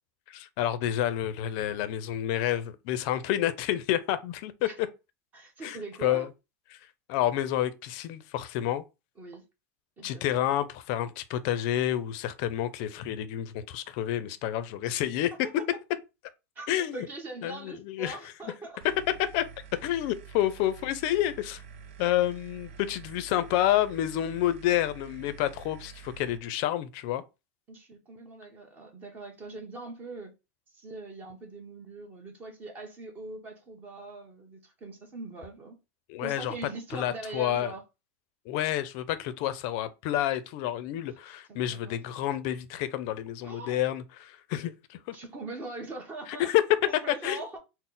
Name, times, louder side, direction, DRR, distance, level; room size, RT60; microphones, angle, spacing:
voice 1, 0.3-4.7 5.6-6.3 7.1-8.8 10.0-15.3 16.7-17.1 17.4-18.2 18.4-18.5 19.3-19.4 19.8-21.6 22.0-27.2 36.1-36.5 36.9-37.7 38.5-45.2 46.4-46.6 47.1-47.4, left 12 dB, 50° left, 0.5 m, -29 dB
voice 2, 5.3-6.3 9.2-9.5 10.0-10.5 14.8-15.0 15.4-15.7 16.6-18.8 27.7-30.3 30.7-35.8 36.2-37.8 41.0-41.9 43.4-43.8 45.1-46.5 46.8-47.6, right 2 dB, 25° right, 1.0 m, -42 dB
sound 1, 18.8-26.4, right 7 dB, 70° right, 0.4 m, -47 dB
4.1 x 2.0 x 3.8 m
supercardioid pair, 155°, 7 cm